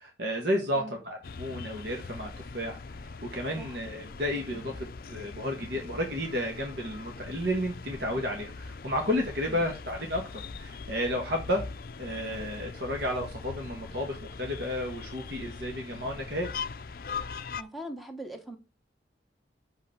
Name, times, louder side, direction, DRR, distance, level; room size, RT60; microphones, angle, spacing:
voice 1, 0.0-11.6 12.0-16.5, equal, 65° right, 1.6 m, -32 dB
voice 2, 0.7-1.0 3.6-3.8 9.5-9.7 17.6-18.6, right 1 dB, ahead, 1.2 m, -41 dB
sound 1, 1.2-17.6, left 4 dB, 50° left, 0.5 m, -41 dB
6.3 x 5.5 x 5.8 m
head